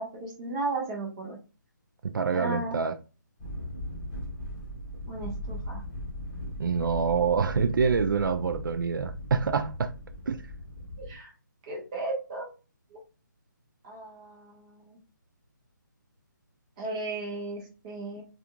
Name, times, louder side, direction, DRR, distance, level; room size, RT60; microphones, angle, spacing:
voice 1, 0.0-1.4 2.3-2.8 5.1-5.8 11.1-11.3 11.7-12.5 13.8-14.5 14.9-15.0 16.8-18.2, right 2 dB, 20° right, 0.8 m, -35 dB
voice 2, 2.0-3.0 6.6-9.9 10.3-10.4, right 5 dB, 80° right, 0.4 m, -26 dB
sound 1, 3.4-11.1, equal, 10° left, 1.1 m, -38 dB
2.4 x 2.4 x 2.8 m
hypercardioid pair, 165°, 11 cm